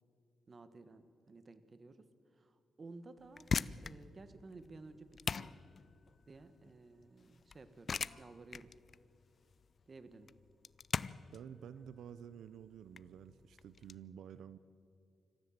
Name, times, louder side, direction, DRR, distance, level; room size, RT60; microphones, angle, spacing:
voice 1, 0.5-2.0 2.3-3.5 3.8-5.5 6.3-8.7 9.9-10.3, right 3 dB, 35° right, 11 dB, 1.5 m, -55 dB
sound 1, 3.2-14.0, left 5 dB, 45° left, 0.5 m, -42 dB
voice 2, 11.3-14.6, right 9 dB, 85° right, 14 dB, 0.6 m, -51 dB
26.0 x 14.5 x 7.4 m, 2.6 s
cardioid pair, 95°, 0 cm